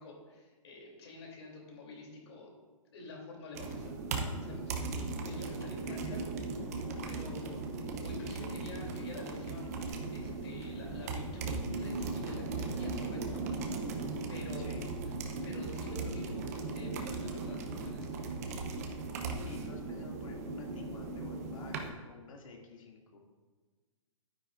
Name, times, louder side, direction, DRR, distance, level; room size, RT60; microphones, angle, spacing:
voice 1, 0.0-2.5 2.9-6.2 7.0-13.4 13.9-15.0 15.4-18.2, left 2 dB, 50° left, 0 dB, 3.0 m, -48 dB
sound 1, 3.5-21.9, right 3 dB, 30° right, 0.8 m, -38 dB
voice 2, 5.8-6.2 14.6-14.9 19.2-23.2, left 3 dB, 70° left, -1 dB, 2.4 m, -50 dB
11.5 x 9.7 x 2.5 m, 1.3 s
hypercardioid pair, 175°, 18 cm